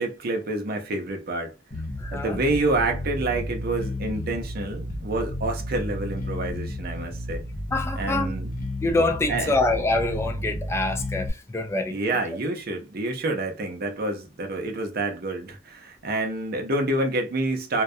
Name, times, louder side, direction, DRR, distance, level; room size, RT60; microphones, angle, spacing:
voice 1, 0.0-1.5 2.1-7.4 8.0-8.5 9.3-9.6 11.9-17.8, right 2 dB, 50° right, 0.6 m, -28 dB
Bass guitar, 1.7-11.3, left 1 dB, 45° left, 0.7 m, -32 dB
voice 2, 2.0-2.4 7.7-8.3 8.8-12.0, left 2 dB, 15° left, 0.3 m, -25 dB
2.2 x 2.1 x 2.6 m
head